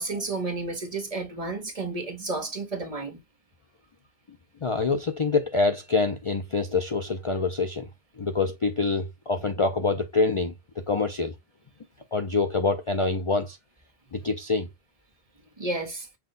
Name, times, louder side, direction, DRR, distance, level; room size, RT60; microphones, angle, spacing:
voice 1, 0.0-3.2 15.6-16.1, right 3 dB, 35° right, 1.1 m, -31 dB
voice 2, 4.6-7.9 8.2-10.5 10.9-11.3 12.1-13.6 14.1-14.7, left 3 dB, 40° left, 0.5 m, -25 dB
6.0 x 2.3 x 3.8 m
omnidirectional pair, 1.1 m